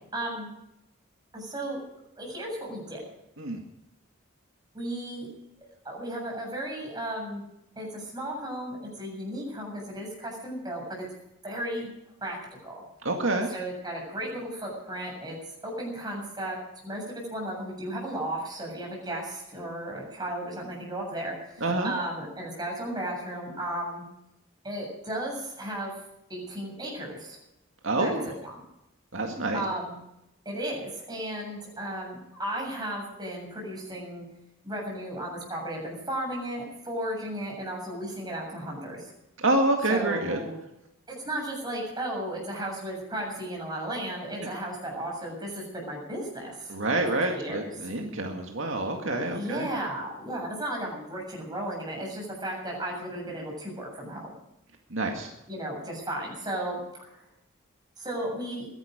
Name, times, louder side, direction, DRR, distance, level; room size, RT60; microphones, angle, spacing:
voice 1, 0.1-0.5 1.3-1.8 2.2-3.0 4.7-5.3 5.8-7.4 7.8-11.1 11.4-11.9 12.2-12.4 12.6-12.8 13.5-15.4 15.6-16.6 16.8-24.0 24.6-25.9 26.3-27.4 28.0-28.2 29.5-30.0 30.5-34.2 34.6-39.0 39.9-40.5 41.1-46.8 47.3-47.7 49.1-54.3 55.5-57.3 58.0-58.7, right 1 dB, 20° right, -1 dB, 7.2 m, -34 dB
voice 2, 13.0-13.5 21.6-21.9 27.8-28.2 29.1-29.6 39.4-40.4 44.4-44.5 46.7-49.7 54.9-55.3, right 2 dB, 70° right, 2 dB, 2.1 m, -27 dB
22.5 x 11.5 x 5.2 m, 0.85 s
head